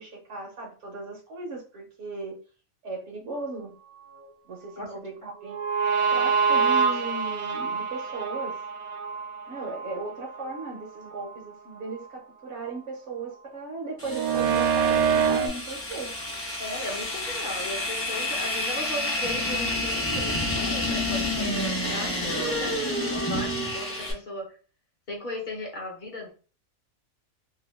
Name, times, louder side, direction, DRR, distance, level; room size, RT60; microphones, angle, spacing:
voice 1, 0.0-2.4 2.8-3.7 4.5-5.6 6.1-8.6 9.5-16.1, right 3 dB, 60° right, 0 dB, 0.9 m, -37 dB
sound 1, 5.4-10.7 11.1-11.3 14.1-15.5, right 6 dB, 90° right, 1.0 m, -25 dB
sound 2, 14.0-24.1, left 1 dB, 20° left, 0.3 m, -29 dB
voice 2, 16.6-24.5 25.1-26.3, left 1 dB, 45° left, 0 dB, 0.7 m, -37 dB
2.7 x 2.2 x 3.3 m, 0.37 s
omnidirectional pair, 1.5 m